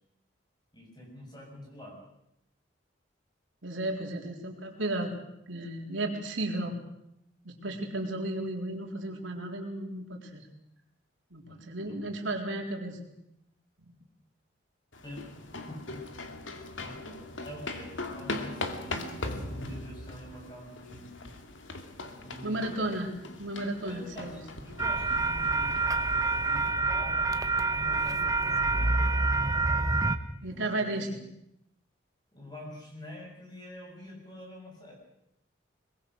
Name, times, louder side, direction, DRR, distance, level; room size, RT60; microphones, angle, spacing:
voice 1, 0.7-2.0 11.5-12.2 15.0-16.0 16.8-21.4 22.2-23.0 23.8-27.3 27.7-29.3 29.7-30.0 30.4-31.1 32.3-34.9, equal, 20° left, 0 dB, 7.2 m, -46 dB
voice 2, 3.6-5.1 5.5-6.8 7.4-10.5 11.3-13.1 13.8-13.9 22.4-23.1 23.4-24.4 30.4-31.1, right 1 dB, 85° right, 1 dB, 3.9 m, -34 dB
sound 1, 14.9-26.7, left 2 dB, 80° left, 2.4 m, -40 dB
sound 2, 24.8-30.2, right 3 dB, 20° right, 1.1 m, -27 dB
23.0 x 21.5 x 6.4 m, 0.81 s
head